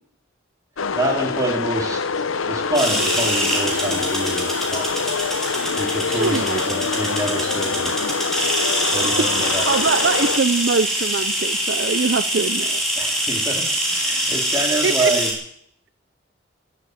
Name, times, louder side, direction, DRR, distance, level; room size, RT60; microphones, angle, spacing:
sound 1, 0.8-10.4, left 5 dB, 85° left, 0.8 m, -25 dB
voice 1, 0.9-2.0 2.5-4.9 5.8-7.9 8.9-9.7 13.0-13.7 13.9-15.3, right 1 dB, 15° right, 0 dB, 3.0 m, -26 dB
sound 2, 2.7-15.3, equal, ahead, 3.4 m, -24 dB
voice 2, 6.1-6.6 9.4-12.8 14.8-15.1, right 4 dB, 60° right, 12 dB, 0.6 m, -23 dB
19.5 x 7.8 x 7.8 m, 0.67 s
head